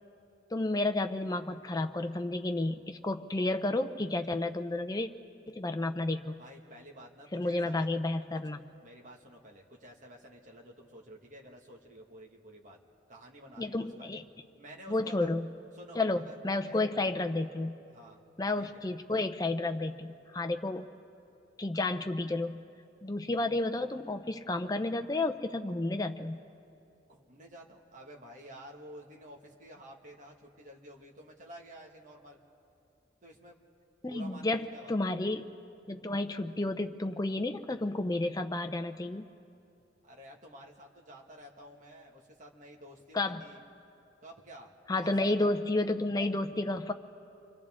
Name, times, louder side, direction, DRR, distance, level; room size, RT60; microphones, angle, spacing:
voice 1, 0.5-5.1 5.5-6.3 7.3-8.6 13.6-14.2 14.9-15.5 15.9-17.8 18.4-20.9 21.6-22.6 23.0-26.4 34.0-35.4 35.9-39.2 43.1-43.4 44.9-46.9, left 2 dB, 20° left, 7 dB, 0.6 m, -31 dB
voice 2, 6.4-7.9 8.3-12.8 13.1-14.2 14.6-15.4 15.7-16.8 17.9-18.2 18.5-18.8 27.1-32.4 33.2-33.6 34.0-35.1 40.0-43.6 44.2-45.4, right 1 dB, 40° right, -1 dB, 1.8 m, -51 dB
29.0 x 24.0 x 3.7 m, 2.6 s
head